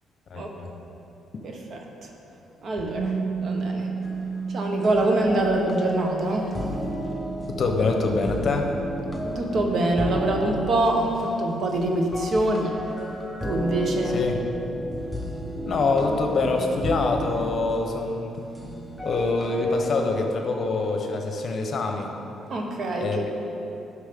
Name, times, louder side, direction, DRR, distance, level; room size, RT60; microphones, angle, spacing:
voice 1, 0.3-0.7 7.5-8.7 14.1-14.4 15.6-18.4 19.0-22.1 23.0-23.3, left 3 dB, 50° left, 3 dB, 1.1 m, -25 dB
voice 2, 1.7-2.1 2.6-3.9 4.5-6.7 9.3-13.0 13.4-14.2 22.5-23.2, right 1 dB, 55° right, 2 dB, 1.2 m, -25 dB
Bass guitar, 3.0-9.2, right 4 dB, 75° right, 0.5 m, -33 dB
sound 1, 4.0-20.2, equal, 5° left, 1.0 m, -34 dB
11.5 x 6.2 x 3.8 m, 2.9 s
cardioid pair, 90°, 0 cm